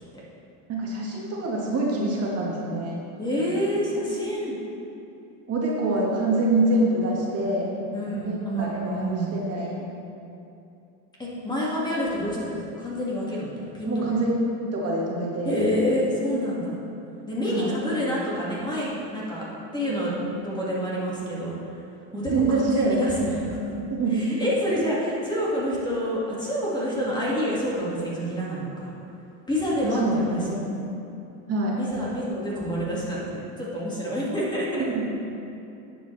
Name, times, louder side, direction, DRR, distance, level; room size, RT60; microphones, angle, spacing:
voice 1, 0.7-3.0 5.5-7.7 8.2-9.9 13.8-14.3 14.6-15.6 17.5-17.7 19.8-20.3 22.1-23.0 23.3-24.4 29.8-30.6 31.5-31.8 34.8-35.1, right 2 dB, 40° right, -3 dB, 1.8 m, -26 dB
voice 2, 3.2-4.6 7.9-9.3 11.2-14.1 15.4-16.8 17.3-19.5 19.7-20.1 20.4-21.5 22.1-23.6 24.1-28.9 29.5-30.6 31.8-34.8, equal, 10° left, -6 dB, 2.1 m, -27 dB
11.0 x 7.8 x 3.3 m, 2.8 s
supercardioid pair, 125°, 37 cm